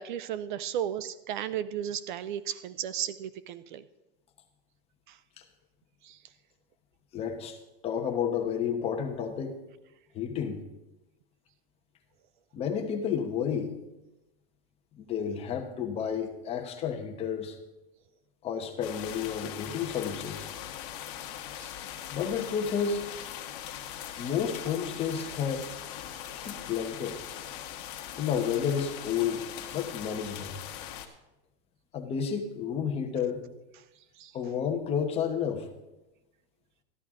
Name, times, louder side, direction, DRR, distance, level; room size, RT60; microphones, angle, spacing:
voice 1, 0.0-3.8 5.1-5.2 6.0-6.2 21.6-21.7 26.1-26.6 34.2-34.3, right 10 dB, 50° right, 16 dB, 0.5 m, -35 dB
voice 2, 7.1-7.6 7.8-9.6 10.1-10.6 12.5-13.7 15.0-17.6 18.4-20.5 22.1-23.0 24.2-25.6 26.3-27.2 28.2-29.4 29.7-30.5 31.9-33.4 34.3-35.7, left 7 dB, 20° left, 5 dB, 1.1 m, -31 dB
sound 1, 18.8-31.1, left 11 dB, 45° left, 1.4 m, -41 dB
13.5 x 12.0 x 3.7 m, 0.98 s
supercardioid pair, 160°, 31 cm